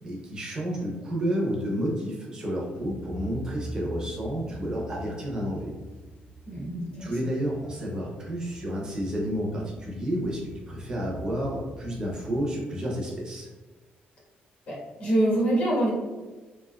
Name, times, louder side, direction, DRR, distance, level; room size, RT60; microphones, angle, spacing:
voice 1, 0.0-5.7 7.0-10.4 10.7-13.5, equal, 20° right, -3 dB, 0.7 m, -30 dB
sound 1, 2.8-12.5, right 2 dB, 90° left, 1.3 m, -44 dB
voice 2, 6.5-7.1 14.7-15.9, right 1 dB, 45° left, -6 dB, 1.1 m, -25 dB
3.4 x 2.7 x 2.2 m, 1.3 s
cardioid pair, 180°, 3 cm